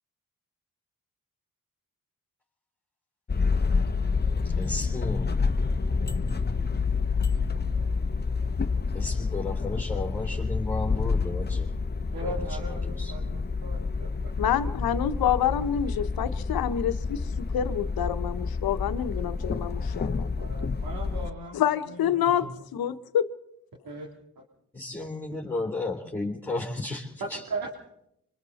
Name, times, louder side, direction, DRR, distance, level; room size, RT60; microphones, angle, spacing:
sound 1, 3.3-21.3, left 4 dB, 30° left, 1.0 m, -28 dB
voice 1, 4.4-5.3 8.9-11.7 12.2-13.2 24.7-27.4, left 2 dB, 5° left, 3.8 m, -34 dB
voice 2, 12.1-14.3 20.4-22.5 23.8-24.1 27.2-27.7, right 2 dB, 75° right, 3.3 m, -38 dB
voice 3, 14.4-20.5 21.5-23.3, left 9 dB, 85° left, 1.0 m, -27 dB
25.5 x 25.0 x 4.2 m
cardioid pair, 65°, 35 cm